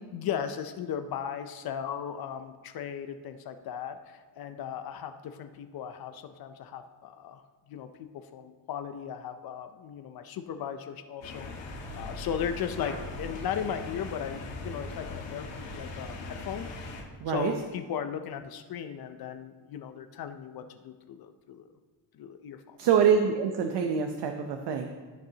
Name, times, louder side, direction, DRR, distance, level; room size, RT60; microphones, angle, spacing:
voice 1, 0.1-7.4 7.7-15.5 15.7-16.7 17.3-21.7 22.1-22.8, left 8 dB, 60° left, 8 dB, 0.6 m, -37 dB
sound 1, 11.2-17.0, left 3 dB, 90° left, 1.7 m, -39 dB
voice 2, 17.2-17.5 22.8-24.9, right 7 dB, 75° right, 5 dB, 0.8 m, -25 dB
16.5 x 6.6 x 2.8 m, 1.4 s
cardioid pair, 150°, 42 cm